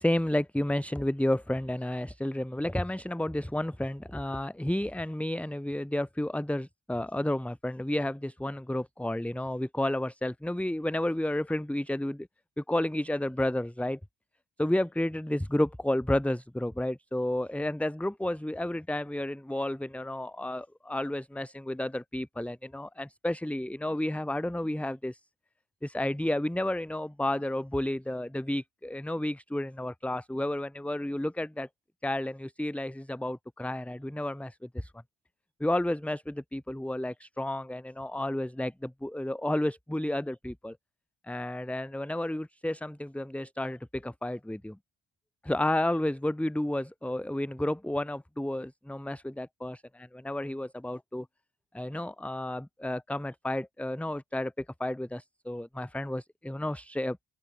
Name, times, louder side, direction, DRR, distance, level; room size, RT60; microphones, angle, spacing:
voice 1, 0.0-12.3 12.6-14.0 14.6-25.2 25.8-31.7 32.0-34.9 35.6-40.8 41.2-44.8 45.4-51.3 51.7-57.2, left 1 dB, 5° left, 1.4 m, -31 dB
open air
cardioid pair, 95°, 45 cm